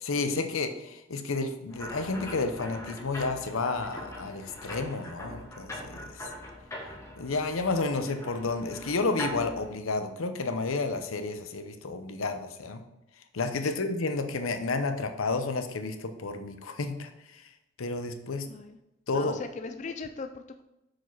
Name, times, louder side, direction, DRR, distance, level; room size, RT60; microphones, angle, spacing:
voice 1, 0.0-6.3 7.2-12.8 13.3-17.1 17.8-18.5 19.1-19.4, left 3 dB, 85° left, 7 dB, 0.7 m, -31 dB
sound 1, 1.7-9.7, equal, 15° left, 1.0 m, -41 dB
voice 2, 18.5-18.8 19.1-20.6, left 4 dB, 35° left, 7 dB, 0.3 m, -39 dB
6.0 x 4.9 x 4.6 m, 0.90 s
head